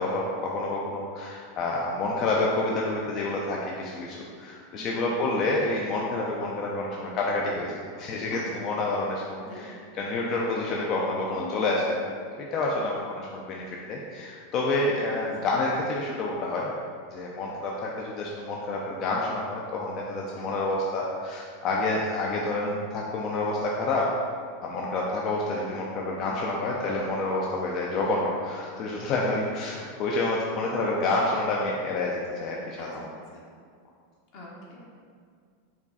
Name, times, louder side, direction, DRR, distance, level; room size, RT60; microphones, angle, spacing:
voice 1, 0.0-11.9 12.4-16.7 17.1-24.1 24.6-33.1, left 2 dB, 40° left, -2 dB, 0.4 m, -28 dB
voice 2, 4.7-5.1 8.2-8.7 9.4-9.8 11.3-12.0 15.2-15.3 20.1-20.5 30.8-31.2 32.8-33.4 34.3-34.9, left 1 dB, 55° left, -5 dB, 1.0 m, -44 dB
4.7 x 2.3 x 4.0 m, 2.1 s
supercardioid pair, 135°, 0 cm